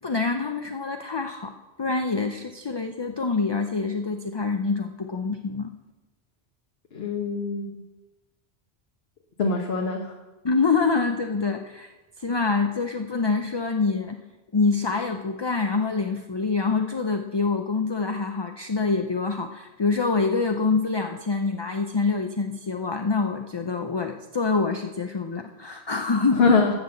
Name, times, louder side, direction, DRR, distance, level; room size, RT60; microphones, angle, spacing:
voice 1, 0.0-5.7 10.4-14.2 14.5-26.6, left 4 dB, 30° left, 6 dB, 0.5 m, -26 dB
voice 2, 6.9-7.8 9.4-10.2 26.4-26.7, left 4 dB, 70° left, 1 dB, 1.3 m, -23 dB
12.5 x 6.0 x 7.7 m, 1.1 s
omnidirectional pair, 1.1 m